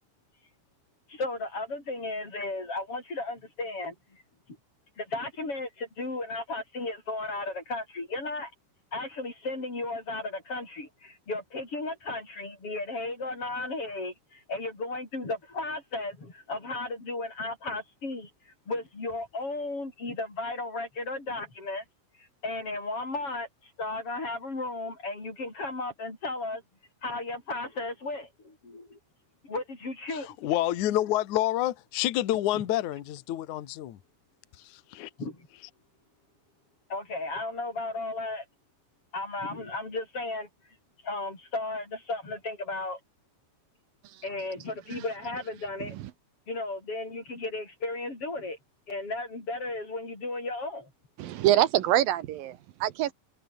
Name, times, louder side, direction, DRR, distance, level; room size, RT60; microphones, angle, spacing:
voice 1, 1.1-4.2 5.0-8.5 8.9-21.8 22.2-26.6 27.0-29.0 29.4-30.4 32.5-32.6 35.2-35.5 36.9-38.4 39.1-40.5 41.0-43.0 44.2-46.0 46.5-48.6 48.9-50.9, left 2 dB, 30° left, 7.7 m, -35 dB
voice 2, 30.1-34.0 34.6-35.1, left 14 dB, 60° left, 2.1 m, -28 dB
voice 3, 51.2-53.1, right 13 dB, 70° right, 2.2 m, -26 dB
omnidirectional pair, 5.3 m